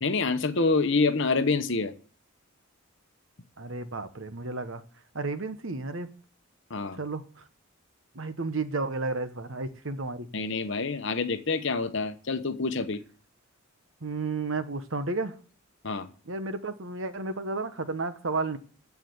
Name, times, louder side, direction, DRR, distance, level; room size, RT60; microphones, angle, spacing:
voice 1, 0.0-1.9 6.7-7.0 10.3-13.0 15.8-16.1, left 3 dB, 55° left, 1.0 m, -27 dB
voice 2, 3.6-4.8 5.1-6.1 7.0-7.2 8.1-10.3 14.0-15.3 16.3-18.6, right 3 dB, 60° right, 1.0 m, -32 dB
14.5 x 4.9 x 7.9 m
head